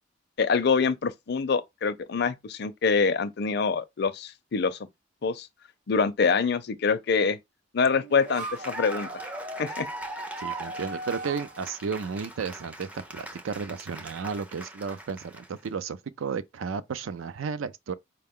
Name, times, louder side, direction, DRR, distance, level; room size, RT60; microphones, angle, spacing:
voice 1, 0.4-4.8 5.2-5.5 5.9-7.4 7.7-9.1 9.6-9.9, left 5 dB, 55° left, 0.5 m, -25 dB
sound 1, 7.9-13.1, right 2 dB, 40° right, 0.8 m, -41 dB
Cheering / Applause, 8.1-15.7, right 1 dB, 5° right, 0.4 m, -40 dB
voice 2, 10.4-17.9, right 5 dB, 85° right, 0.4 m, -33 dB
4.6 x 2.2 x 3.6 m
head